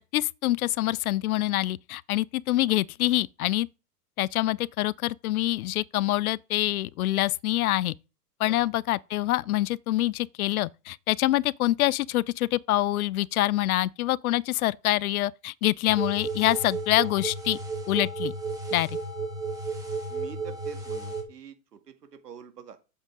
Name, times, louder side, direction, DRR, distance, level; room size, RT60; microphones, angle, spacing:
voice 1, 0.0-3.7 4.2-7.9 8.4-17.6 17.9-18.3 18.7-18.9, left 16 dB, 65° left, 0.5 m, -26 dB
sound 1, 15.9-21.2, right 3 dB, 5° right, 2.8 m, -33 dB
voice 2, 20.1-21.8 22.2-22.8, right 8 dB, 85° right, 2.0 m, -46 dB
7.9 x 7.4 x 3.7 m
hypercardioid pair, 115°, 47 cm